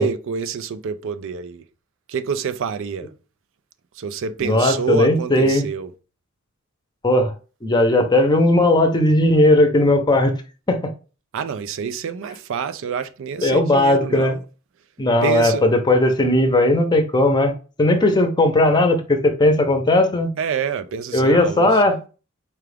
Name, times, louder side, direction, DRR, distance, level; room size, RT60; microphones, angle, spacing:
voice 1, 0.0-1.6 2.1-3.1 4.0-5.9 11.3-14.4 15.2-15.6 20.4-21.8, right 6 dB, 65° right, 0.4 m, -27 dB
voice 2, 4.4-5.7 7.0-7.3 7.6-10.3 10.7-10.8 13.4-14.3 15.0-17.5 17.8-20.3 21.1-22.0, left 1 dB, 20° left, 0.7 m, -17 dB
4.6 x 2.4 x 3.3 m
head